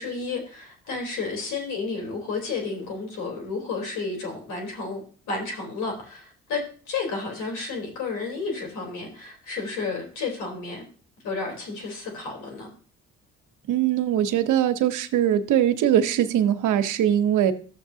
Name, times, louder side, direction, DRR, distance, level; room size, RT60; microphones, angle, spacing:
voice 1, 0.0-6.6 6.9-10.8 11.2-12.7, left 4 dB, 90° left, 0 dB, 3.6 m, -32 dB
voice 2, 13.7-17.5, right 10 dB, 85° right, 8 dB, 0.9 m, -21 dB
13.0 x 7.4 x 2.8 m, 0.40 s
cardioid pair, 90°, 30 cm